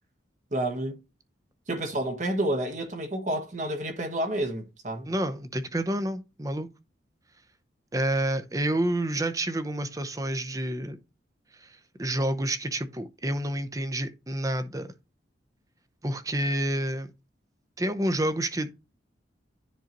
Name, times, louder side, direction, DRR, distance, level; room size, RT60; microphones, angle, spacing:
voice 1, 0.5-1.0 1.7-5.1, right 1 dB, 40° right, 1.2 m, -29 dB
voice 2, 5.1-6.7 7.9-11.0 11.6-14.9 16.0-17.1 17.8-18.7, right 1 dB, 20° right, 0.6 m, -29 dB
10.0 x 3.9 x 3.0 m
head